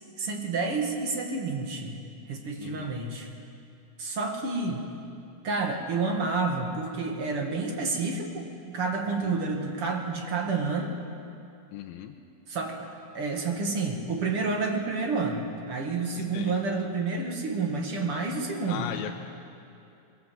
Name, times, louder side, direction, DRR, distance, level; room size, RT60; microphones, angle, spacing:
voice 1, 0.2-2.0 2.3-3.3 4.0-4.8 5.4-10.9 12.5-12.9 13.1-18.9, right 3 dB, 45° right, 2 dB, 2.6 m, -29 dB
voice 2, 2.6-2.9 9.2-9.3 11.7-12.2 16.3-16.5 18.7-19.2, left 10 dB, 85° left, 2 dB, 2.7 m, -37 dB
23.0 x 22.0 x 7.8 m, 2.6 s
omnidirectional pair, 4.2 m